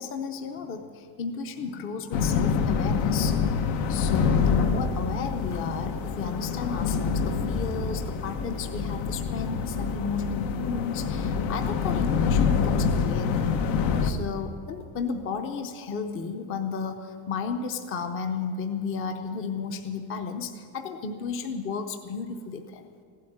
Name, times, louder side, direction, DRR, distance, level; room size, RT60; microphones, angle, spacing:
voice 1, 0.0-3.4 3.9-13.5 14.0-22.9, left 5 dB, 30° left, 6 dB, 0.7 m, -33 dB
sound 1, 2.1-14.1, left 5 dB, 75° left, 1.3 m, -26 dB
15.5 x 8.5 x 10.0 m, 2.2 s
cardioid pair, 180°, 43 cm